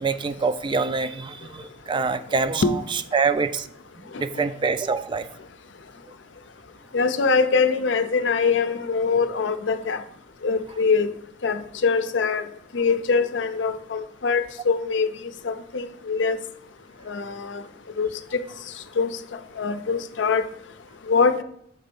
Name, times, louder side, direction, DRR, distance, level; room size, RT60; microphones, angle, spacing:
voice 1, 0.0-2.6 3.1-3.7 4.2-5.3, right 4 dB, 25° right, 0.3 m, -25 dB
voice 2, 6.9-10.0 10.4-11.1 11.4-12.4 12.7-15.1 15.4-16.4 17.1-17.3 18.0-18.1 19.0-19.1 19.6-20.4 21.1-21.4, left 5 dB, 85° left, 0.6 m, -23 dB
6.5 x 4.3 x 5.3 m
head